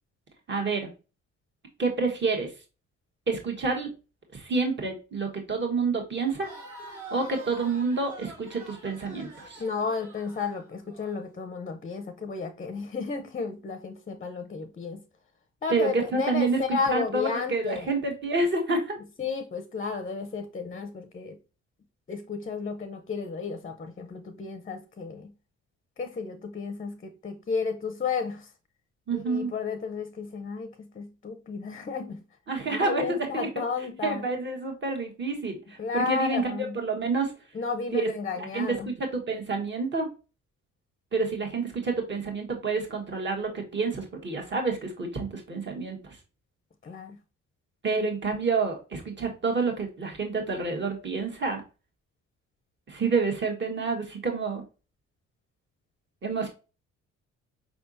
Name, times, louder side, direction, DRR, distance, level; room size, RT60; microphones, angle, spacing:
voice 1, 0.5-0.9 1.8-2.5 3.3-3.9 4.3-6.5 7.1-9.6 15.7-19.0 29.1-29.5 32.5-33.0 33.3-33.5 34.0-36.4 36.7-37.3 37.9-38.1 38.5-40.1 41.1-46.2 47.8-51.6 52.9-54.6 56.2-56.5, right 4 dB, 40° right, 1.5 m, -28 dB
Crowd, 6.2-11.2, right 2 dB, 75° right, 2.0 m, -46 dB
voice 2, 9.6-15.0 15.6-17.9 19.2-21.4 22.1-25.3 26.0-28.5 29.1-32.2 32.7-34.3 35.8-36.8 37.5-38.9 46.8-47.2, left 5 dB, 25° left, 0.6 m, -33 dB
4.9 x 3.4 x 2.6 m
cardioid pair, 90°, 30 cm